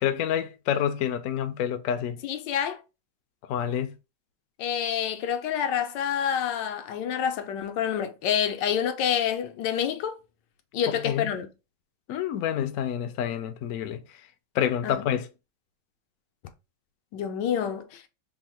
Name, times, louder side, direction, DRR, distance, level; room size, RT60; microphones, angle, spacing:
voice 1, 0.0-2.2 3.5-3.9 10.9-11.3 12.1-14.0 14.5-15.3, left 9 dB, 70° left, 0.8 m, -28 dB
voice 2, 2.2-2.8 4.6-10.2 10.7-11.5 14.8-15.0 17.1-17.9, left 8 dB, 85° left, 1.3 m, -27 dB
3.5 x 2.1 x 4.3 m
omnidirectional pair, 1.9 m